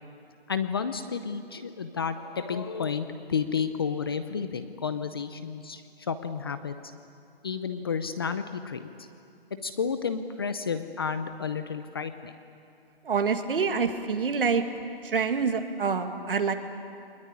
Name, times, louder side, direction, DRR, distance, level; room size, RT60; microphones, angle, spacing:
voice 1, 0.5-6.7 7.4-8.9 9.6-12.3, left 6 dB, 25° left, 10 dB, 0.6 m, -31 dB
voice 2, 13.0-14.6 15.0-16.5, right 5 dB, 60° right, 7 dB, 2.2 m, -26 dB
22.5 x 20.5 x 9.7 m, 2.5 s
hypercardioid pair, 165°, 31 cm